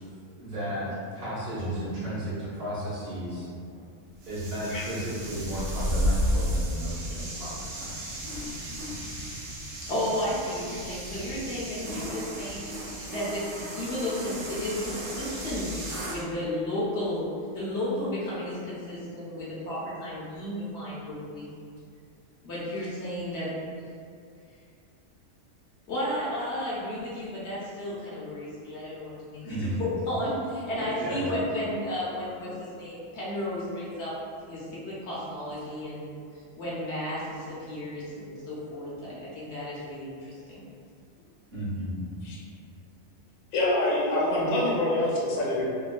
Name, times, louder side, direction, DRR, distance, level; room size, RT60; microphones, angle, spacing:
voice 1, 0.3-3.5 4.3-8.0 29.4-29.8 30.7-31.4 41.5-41.9, right 1 dB, 50° right, -9 dB, 1.0 m, -34 dB
sound 1, 4.2-16.2, equal, 80° right, 1.0 m, -33 dB
voice 2, 9.9-12.7 13.1-17.2 17.5-21.5 22.4-23.5 25.9-34.1 34.5-36.2 36.6-40.6, left 1 dB, 60° left, -8 dB, 0.9 m, -33 dB
voice 3, 43.5-45.6, left 1 dB, 85° left, -5 dB, 1.0 m, -25 dB
2.9 x 2.2 x 2.4 m, 2.3 s
omnidirectional pair, 1.3 m